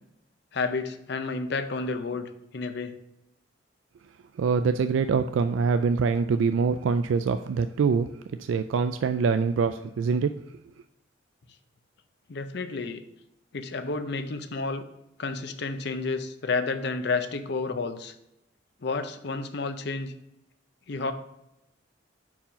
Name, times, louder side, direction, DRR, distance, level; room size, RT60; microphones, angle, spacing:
voice 1, 0.5-3.0 12.3-13.0 13.5-14.9 15.2-18.1 18.8-20.1 20.9-21.1, left 4 dB, 60° left, 9 dB, 0.6 m, -31 dB
voice 2, 4.4-8.1 8.4-10.3, right 5 dB, 80° right, 9 dB, 0.3 m, -24 dB
5.6 x 4.7 x 5.0 m, 0.87 s
head